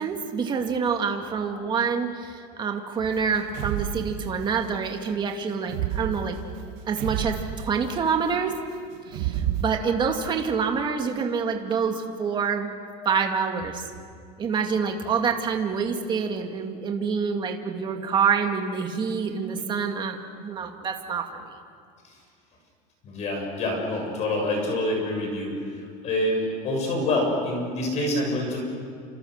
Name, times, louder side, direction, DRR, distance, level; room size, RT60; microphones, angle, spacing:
voice 1, 0.0-6.4 6.9-8.6 9.1-12.7 13.1-13.9 14.4-21.5, right 6 dB, 20° right, 4 dB, 2.1 m, -27 dB
sound 1, 3.0-4.7 5.6-8.2 9.1-9.6, right 11 dB, 55° right, 1.4 m, -31 dB
voice 2, 23.0-28.6, left 1 dB, 35° left, 1 dB, 7.1 m, -27 dB
29.0 x 27.0 x 6.6 m, 2.2 s
cardioid pair, 170°, 21 cm